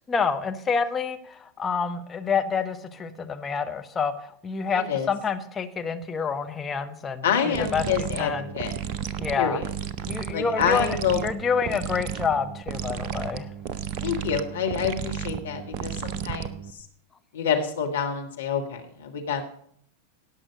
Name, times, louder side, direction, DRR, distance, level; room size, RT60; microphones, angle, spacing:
voice 1, 0.1-4.1 4.4-7.8 8.2-8.5 9.2-9.6 10.1-11.0 11.2-13.5, left 5 dB, 20° left, 6 dB, 1.0 m, -27 dB
voice 2, 4.7-5.1 7.2-8.7 9.4-9.6 10.3-11.2 14.0-16.9 17.3-19.4, left 7 dB, 65° left, 3 dB, 1.5 m, -27 dB
sound 1, 7.5-16.8, right 8 dB, 45° right, 0.7 m, -33 dB
17.5 x 6.1 x 5.2 m, 0.65 s
figure-of-eight pair, 90°, 0 cm